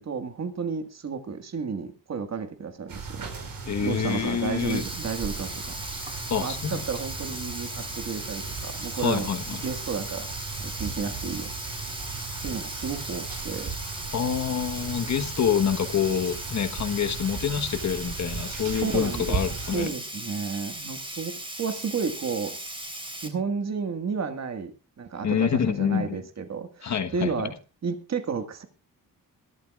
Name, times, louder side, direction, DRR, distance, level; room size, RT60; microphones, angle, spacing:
voice 1, 0.0-3.3 3.8-5.8 6.0-10.3 10.6-11.5 12.4-13.7 18.4-22.6 23.2-27.5 27.8-28.6, right 5 dB, 50° right, 1.9 m, -32 dB
sound 1, 2.9-19.9, right 5 dB, 75° right, 4.8 m, -37 dB
voice 2, 3.6-4.8 6.3-6.8 9.0-9.6 14.1-19.9 25.2-26.2 26.8-27.5, left 7 dB, 55° left, 1.4 m, -27 dB
Sink (filling or washing), 4.6-23.3, right 1 dB, 15° right, 3.5 m, -38 dB
22.5 x 13.0 x 2.4 m
cardioid pair, 110°, 34 cm